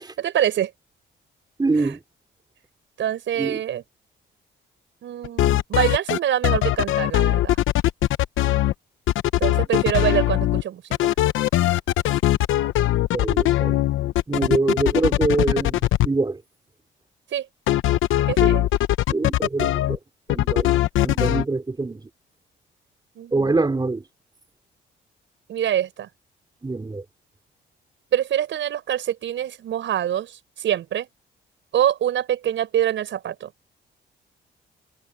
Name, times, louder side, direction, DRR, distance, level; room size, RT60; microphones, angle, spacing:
voice 1, 0.2-0.7 1.8-1.9 3.0-3.8 5.0-7.6 9.4-11.1 14.3-14.6 17.3-17.5 18.2-18.7 23.1-23.6 25.5-26.1 28.1-31.1 31.7-33.5, right 10 dB, 70° right, 6.7 m, -25 dB
voice 2, 1.6-2.0 3.4-3.6 9.5-9.6 13.1-13.8 14.3-16.4 19.1-20.0 20.3-20.7 21.0-22.1 23.3-24.0 26.6-27.0, right 3 dB, 20° right, 4.1 m, -24 dB
sound 1, 5.2-6.2 6.4-8.7 9.1-10.6 10.9-16.1 17.7-20.0 20.3-21.4, left 14 dB, 80° left, 0.9 m, -20 dB
cardioid pair, 90°, 20 cm